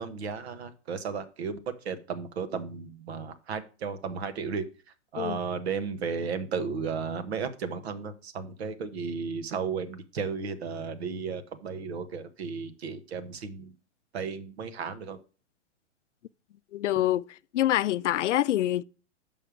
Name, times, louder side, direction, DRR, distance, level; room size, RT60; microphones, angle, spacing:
voice 1, 0.0-1.6 1.8-4.6 5.1-13.8 14.1-15.2, right 5 dB, 60° right, 1.2 m, -34 dB
voice 2, 16.7-17.2 17.5-18.8, left 13 dB, 80° left, 0.5 m, -25 dB
6.7 x 5.4 x 4.8 m
hypercardioid pair, 155°, 35 cm